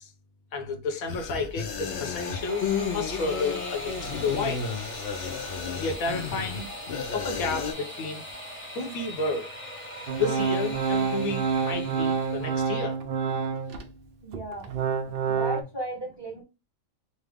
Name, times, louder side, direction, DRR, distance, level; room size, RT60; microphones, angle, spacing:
voice 1, 0.5-2.7 2.9-4.6 5.7-6.7 7.1-8.2 8.8-9.5 10.2-13.0, left 3 dB, 80° left, 1.2 m, -31 dB
sound 1, 1.1-7.7, left 6 dB, 65° left, 0.7 m, -33 dB
sound 2, 1.5-12.6, equal, 10° left, 0.6 m, -40 dB
Organ, 10.1-13.9 14.3-15.6, right 6 dB, 60° right, 0.6 m, -28 dB
voice 2, 14.2-14.7 15.3-16.4, right 1 dB, 20° right, 1.1 m, -35 dB
3.3 x 2.1 x 3.4 m
omnidirectional pair, 1.5 m